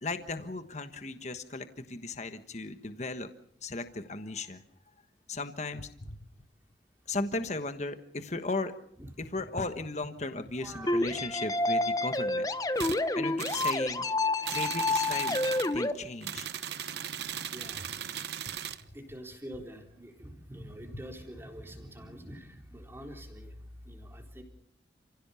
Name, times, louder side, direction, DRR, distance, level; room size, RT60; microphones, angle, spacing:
voice 1, 0.0-3.3 3.6-4.6 5.3-6.3 7.1-8.7 9.2-12.5 13.1-14.1 14.5-15.4 15.7-16.5, left 3 dB, 40° left, 9 dB, 1.3 m, -36 dB
voice 2, 10.6-11.2 17.5-17.8 18.9-23.5 23.9-24.4, equal, 15° right, 2 dB, 3.9 m, -45 dB
sound 1, 10.9-15.9, left 2 dB, 20° left, 1.1 m, -29 dB
sound 2, 12.8-13.0 13.4-13.8 14.4-15.7 16.2-18.8, right 9 dB, 70° right, 1.0 m, -37 dB
30.0 x 16.5 x 7.0 m, 0.71 s
head